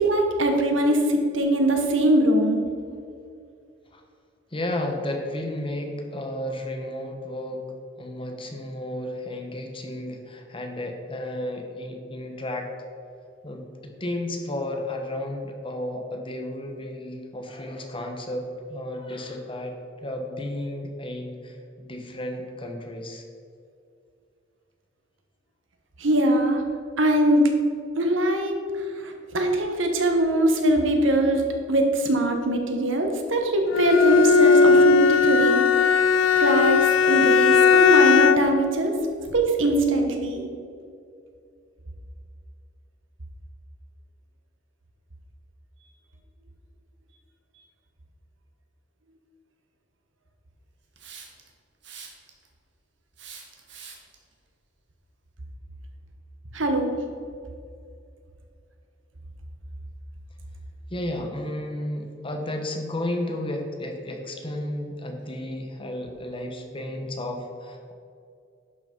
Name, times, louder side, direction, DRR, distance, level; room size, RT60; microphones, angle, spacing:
voice 1, 0.0-2.6 26.0-26.6 27.0-27.5 28.0-35.6 36.4-39.0 39.3-40.5 56.5-57.0, right 1 dB, 85° right, 3 dB, 1.4 m, -22 dB
voice 2, 4.5-12.7 13.4-23.2 60.9-67.9, left 1 dB, 30° left, 3 dB, 1.2 m, -33 dB
Bowed string instrument, 33.7-38.6, left 5 dB, 80° left, 0.5 m, -17 dB
Hiss, 51.0-51.5 51.8-52.5 53.2-54.1, right 6 dB, 65° right, 1.7 m, -43 dB
11.0 x 6.0 x 5.4 m, 2.4 s
head